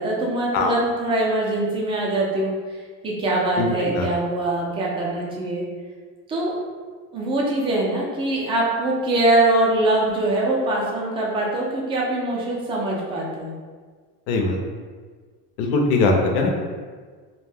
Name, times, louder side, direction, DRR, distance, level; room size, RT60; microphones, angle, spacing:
voice 1, 0.0-2.5 3.0-5.6 6.3-6.5 7.1-13.5, right 2 dB, 15° right, -4 dB, 0.3 m, -23 dB
voice 2, 3.6-4.1 14.3-14.6 15.6-16.5, left 3 dB, 75° left, 2 dB, 0.6 m, -21 dB
2.6 x 2.1 x 3.3 m, 1.5 s
cardioid pair, 170°, 32 cm